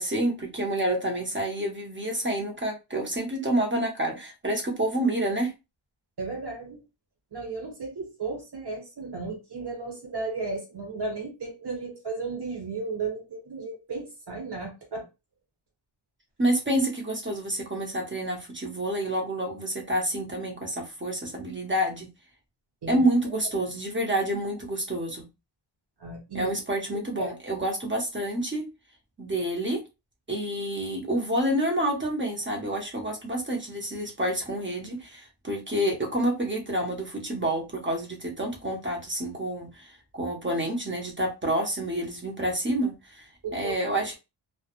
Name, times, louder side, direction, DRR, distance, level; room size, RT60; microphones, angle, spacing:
voice 1, 0.0-5.5 16.4-22.1 22.9-25.3 26.3-28.7 29.2-29.8 30.3-44.2, right 1 dB, 25° right, 0.7 m, -28 dB
voice 2, 6.2-6.8 7.3-15.1 22.8-23.0 26.0-26.5 26.9-27.6 43.4-43.9, right 3 dB, 55° right, 1.1 m, -35 dB
2.1 x 2.1 x 2.9 m
wide cardioid pair, 100°, 49 cm